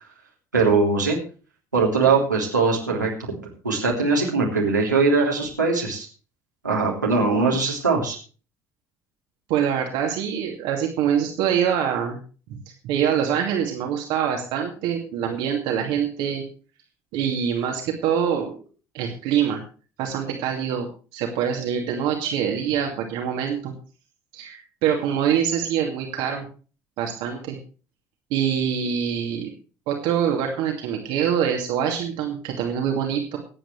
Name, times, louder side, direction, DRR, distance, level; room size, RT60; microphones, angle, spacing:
voice 1, 0.5-1.2 1.7-3.3 3.6-6.1 6.6-8.2, right 4 dB, 90° right, -3 dB, 3.4 m, -21 dB
voice 2, 9.5-12.2 12.5-16.4 17.1-18.5 18.9-19.6 20.0-20.9 21.1-23.7 24.3-26.4 27.0-27.6 28.3-29.5 29.9-33.4, right 8 dB, 60° right, 2 dB, 2.6 m, -24 dB
24.0 x 9.0 x 3.3 m, 0.37 s
figure-of-eight pair, 60°, 9 cm